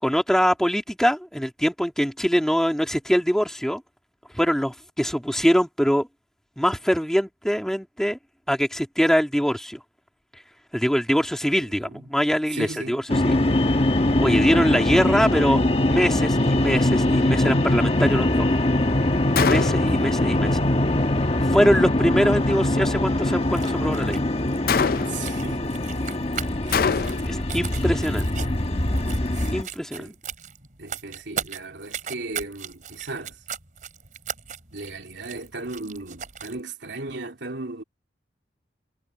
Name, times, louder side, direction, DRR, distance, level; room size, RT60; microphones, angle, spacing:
voice 1, 0.0-3.8 4.3-6.1 6.6-8.2 8.5-9.8 10.7-13.4 14.2-18.5 19.5-20.6 21.5-24.2 27.3-28.5 29.5-30.1, equal, 5° left, 2.4 m, -23 dB
voice 2, 11.4-12.2 12.5-13.0 20.0-20.2 25.0-25.6 25.9-26.4 26.8-27.3 29.6-29.7 30.0-30.1 30.8-33.4 34.7-37.8, right 3 dB, 80° right, 3.0 m, -36 dB
sound 1, 13.1-29.6, left 1 dB, 35° left, 1.2 m, -22 dB
Gunshot gunfire, 19.4-20.0 24.7-25.4 26.7-27.4, left 6 dB, 55° left, 0.4 m, -24 dB
sound 2, 23.4-36.6, right 7 dB, 45° right, 4.5 m, -39 dB
head